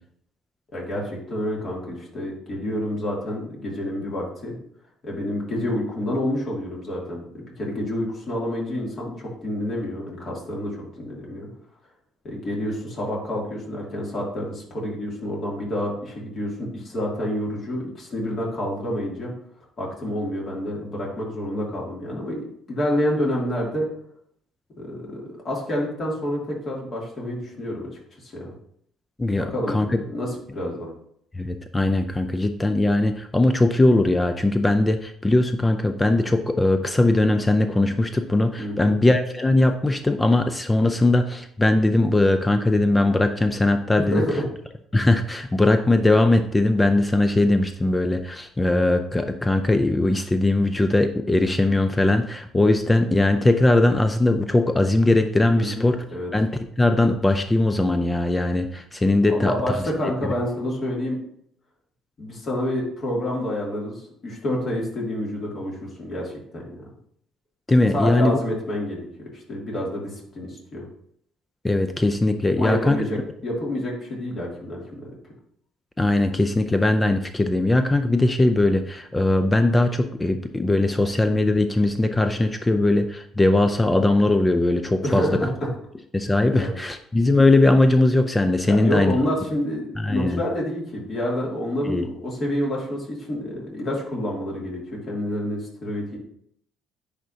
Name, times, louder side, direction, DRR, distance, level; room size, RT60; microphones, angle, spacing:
voice 1, 0.7-4.5 5.0-11.5 12.2-19.3 19.8-23.9 24.8-27.9 28.2-28.5 29.4-30.9 38.6-38.9 44.0-44.4 55.6-56.3 59.3-61.2 62.2-66.6 67.9-69.1 69.3-70.9 72.5-75.1 85.0-85.7 86.5-86.7 88.7-96.2, left 1 dB, 45° left, -3 dB, 2.8 m, -28 dB
voice 2, 29.2-30.0 31.3-44.2 44.9-56.0 56.3-59.5 67.7-68.4 71.6-73.0 76.0-85.3 86.1-89.1 90.0-90.4 91.8-92.0, left 2 dB, 20° left, 8 dB, 0.5 m, -20 dB
10.0 x 3.7 x 2.8 m, 0.68 s
hypercardioid pair, 55°, 0 cm